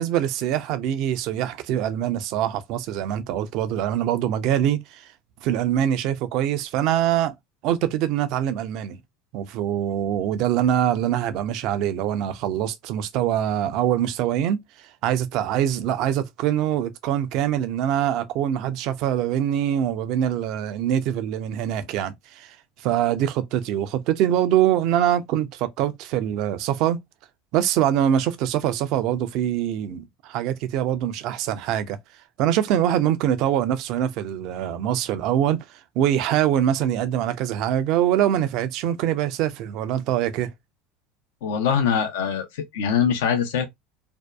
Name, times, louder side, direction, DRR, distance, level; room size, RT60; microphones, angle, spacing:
voice 1, 0.0-5.1 5.4-7.3 7.6-9.0 9.3-14.6 15.0-22.6 22.8-27.0 27.5-32.0 32.4-35.6 36.0-40.5, right 10 dB, 60° right, 0.4 m, -24 dB
voice 2, 41.4-43.7, left 7 dB, 70° left, 0.5 m, -23 dB
2.6 x 2.2 x 2.2 m
hypercardioid pair, 75°, 0 cm